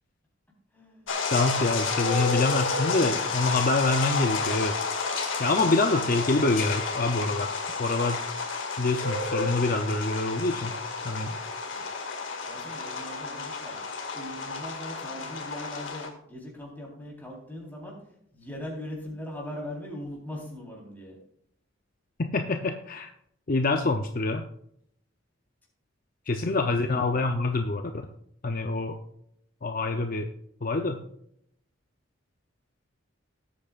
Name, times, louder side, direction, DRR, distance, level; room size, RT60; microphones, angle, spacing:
voice 1, 0.7-1.1 11.7-11.9 12.4-13.8 14.1-18.0 18.3-21.2 26.4-26.5 26.9-27.3, left 1 dB, 10° left, -3 dB, 3.9 m, -40 dB
sound 1, 1.1-16.1, left 4 dB, 75° left, 2.1 m, -31 dB
voice 2, 1.3-4.7 5.4-7.5 7.8-8.3 8.8-10.7 11.0-11.4 22.2-23.1 23.5-24.4 26.3-27.8 28.4-29.0 29.6-30.3 30.6-31.0, left 3 dB, 45° left, 5 dB, 0.6 m, -26 dB
18.0 x 8.6 x 2.5 m, 0.70 s
head